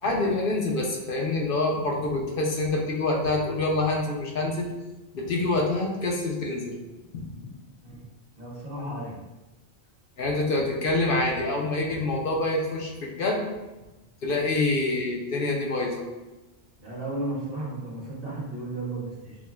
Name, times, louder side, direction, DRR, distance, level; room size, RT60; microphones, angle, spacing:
voice 1, 0.0-4.7 5.1-6.8 7.1-7.5 10.2-13.5 14.2-16.0, left 2 dB, 65° left, -1 dB, 0.7 m, -26 dB
voice 2, 8.4-9.2 16.8-19.4, right 2 dB, 60° right, -6 dB, 1.3 m, -34 dB
6.0 x 2.1 x 2.3 m, 1.1 s
omnidirectional pair, 1.1 m